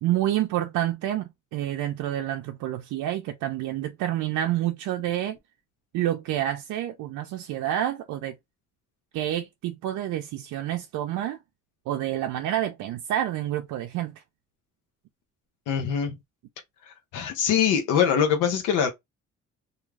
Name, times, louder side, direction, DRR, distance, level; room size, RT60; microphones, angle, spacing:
voice 1, 0.0-5.4 5.9-8.4 9.1-11.4 11.9-14.2, right 12 dB, 80° right, 0.5 m, -28 dB
voice 2, 15.7-16.2 16.9-18.9, left 8 dB, 85° left, 0.7 m, -23 dB
2.4 x 2.3 x 3.1 m
cardioid pair, 90°, 30 cm